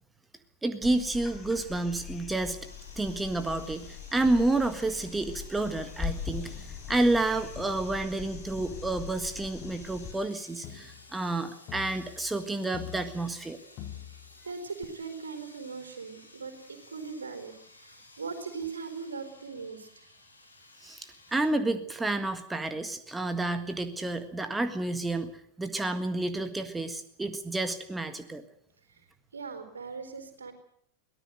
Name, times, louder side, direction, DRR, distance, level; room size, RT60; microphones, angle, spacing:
voice 1, 0.6-2.6 3.0-13.6 20.8-28.4, right 2 dB, 10° right, 9 dB, 1.7 m, -30 dB
sound 1, 0.8-10.1 12.2-12.3, left 6 dB, 20° left, 5.4 m, -41 dB
sound 2, 2.6-21.5, left 2 dB, 80° left, 4.7 m, -55 dB
Crowd, 6.5-8.3 8.6-13.5 13.8-14.4 14.8-14.9, left 11 dB, 40° left, 2.7 m, -47 dB
voice 2, 14.4-19.9 28.9-29.0 29.3-30.5, right 5 dB, 70° right, 8 dB, 4.3 m, -40 dB
23.5 x 18.0 x 8.0 m, 0.69 s
figure-of-eight pair, 90°, 0 cm